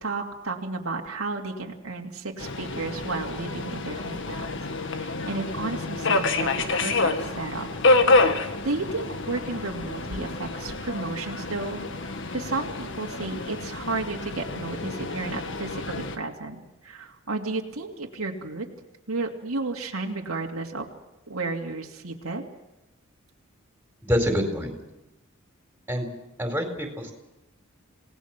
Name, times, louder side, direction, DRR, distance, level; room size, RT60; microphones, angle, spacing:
voice 1, 0.0-4.5 4.9-7.7 8.2-18.7 19.1-20.9 21.3-22.4, right 3 dB, 90° right, 0 dB, 2.5 m, -33 dB
Subway metro underground, 2.4-16.2, left 3 dB, 60° left, 1.7 m, -27 dB
voice 2, 24.0-24.7 25.9-26.1 26.4-27.1, equal, 10° right, 4 dB, 4.4 m, -26 dB
27.5 x 18.5 x 6.1 m, 0.99 s
head